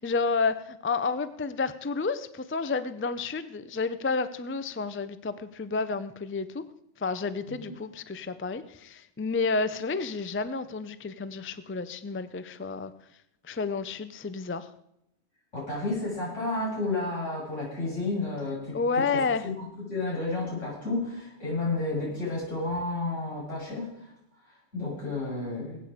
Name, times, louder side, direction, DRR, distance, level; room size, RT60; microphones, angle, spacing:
voice 1, 0.0-6.6 7.0-12.9 13.5-14.7 18.7-19.5, left 4 dB, 15° left, 13 dB, 0.4 m, -30 dB
voice 2, 15.5-24.1 24.4-25.8, left 2 dB, 85° left, -6 dB, 8.2 m, -32 dB
20.0 x 8.9 x 5.1 m, 0.78 s
omnidirectional pair, 1.2 m